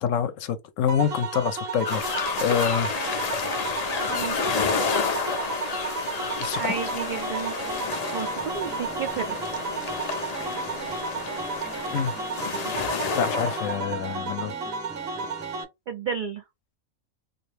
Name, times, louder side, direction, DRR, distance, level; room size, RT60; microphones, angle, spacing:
voice 1, 0.0-2.9 5.8-5.9 6.4-6.7 11.9-12.1 13.2-14.5, left 8 dB, 75° left, 0.9 m, -26 dB
sound 1, 0.9-15.6, right 4 dB, 55° right, 0.8 m, -33 dB
sound 2, 1.8-13.8, left 5 dB, 50° left, 0.4 m, -30 dB
voice 2, 6.5-7.5 8.1-9.4 15.9-16.4, right 6 dB, 80° right, 0.4 m, -31 dB
sound 3, 7.6-15.6, right 2 dB, 5° right, 0.4 m, -44 dB
2.6 x 2.5 x 3.2 m
omnidirectional pair, 1.4 m